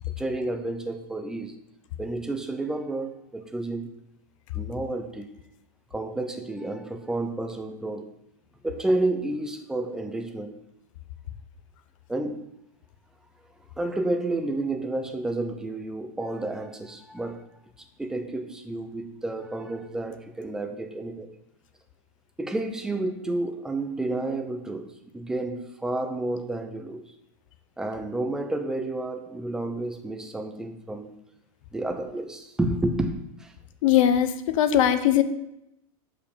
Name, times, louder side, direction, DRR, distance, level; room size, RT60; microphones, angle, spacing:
voice 1, 0.2-1.5 2.0-3.9 4.5-5.3 5.9-8.1 8.6-10.6 12.1-12.4 13.8-17.5 18.0-21.3 22.4-27.0 27.8-31.2 31.7-33.5, right 2 dB, 5° right, 0.5 m, -30 dB
voice 2, 33.8-35.2, left 10 dB, 60° left, 0.7 m, -20 dB
6.7 x 5.5 x 6.6 m
supercardioid pair, 155°, 19 cm